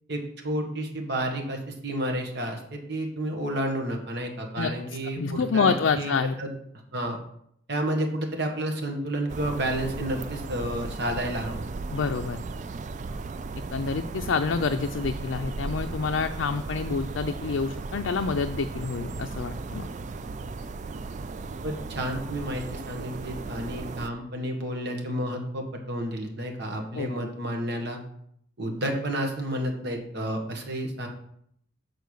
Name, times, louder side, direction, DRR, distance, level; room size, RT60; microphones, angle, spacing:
voice 1, 0.1-6.1 6.4-6.5 6.9-7.2 7.7-11.6 21.6-28.0 28.6-31.1, right 1 dB, 60° right, 3 dB, 1.5 m, -31 dB
voice 2, 5.2-6.4 11.9-12.4 13.7-19.9 27.0-27.3, left 5 dB, 75° left, 6 dB, 0.4 m, -27 dB
sound 1, 9.3-24.1, right 3 dB, 40° right, 0.4 m, -36 dB
6.9 x 4.5 x 6.4 m, 0.70 s
head